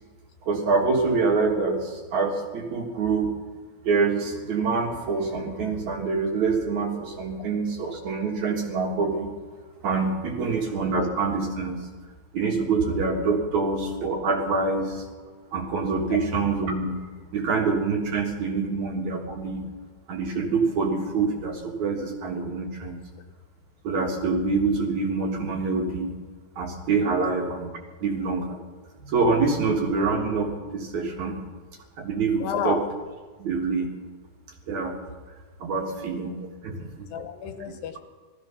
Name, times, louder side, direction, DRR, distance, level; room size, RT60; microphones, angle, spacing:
voice 1, 0.4-3.3 3.8-9.3 9.8-11.9 12.3-15.0 15.5-17.0 17.3-19.7 20.1-23.0 23.8-26.1 26.6-27.7 28.0-28.6 29.0-31.4 32.0-32.8 33.4-33.9 34.7-35.0 35.6-37.1, right 4 dB, 55° right, 1 dB, 2.6 m, -26 dB
voice 2, 10.1-10.5 16.1-16.2 27.2-27.3 29.6-29.7 32.4-32.8 35.7-36.1 37.1-38.0, left 8 dB, 75° left, 7 dB, 2.6 m, -32 dB
18.0 x 14.0 x 5.7 m, 1.4 s
omnidirectional pair, 4.4 m